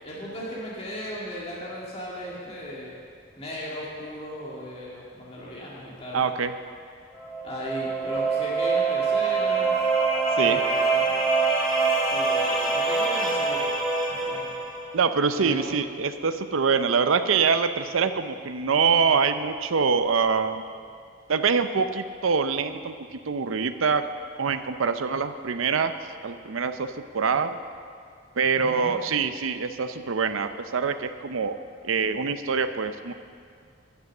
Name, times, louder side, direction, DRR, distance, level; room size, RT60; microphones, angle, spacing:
voice 1, 0.0-2.9 3.4-6.2 7.4-9.7 10.4-11.1 12.0-13.8 14.1-14.5 15.4-15.6 28.5-29.0, equal, 30° left, -5 dB, 2.0 m, -37 dB
voice 2, 6.1-6.5 10.4-10.6 14.9-20.6 21.3-22.9 23.3-24.1 24.4-25.9 26.2-27.6 28.4-31.6 31.8-33.1, right 5 dB, 85° right, 10 dB, 0.6 m, -24 dB
sound 1, 7.2-14.9, right 4 dB, 5° left, 1.5 m, -24 dB
10.5 x 9.6 x 6.6 m, 2.2 s
head